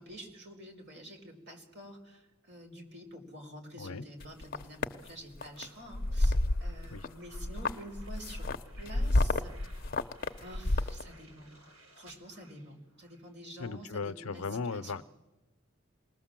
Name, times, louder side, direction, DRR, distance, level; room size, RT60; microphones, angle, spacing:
voice 1, 0.0-6.4 6.6-8.5 8.8-9.9 10.4-11.5 12.0-14.4 14.7-14.9, right 1 dB, 55° right, 2 dB, 4.5 m, -48 dB
voice 2, 3.8-4.1 6.9-7.1 13.6-15.0, left 4 dB, 85° left, 13 dB, 0.7 m, -37 dB
sound 1, 4.2-4.9 5.4-5.6 5.9-7.1 7.3-11.0, left 2 dB, 45° left, 0.7 m, -29 dB
sound 2, 5.5-13.3, right 1 dB, 85° right, 4.4 m, -59 dB
27.5 x 20.0 x 7.5 m, 1.2 s
head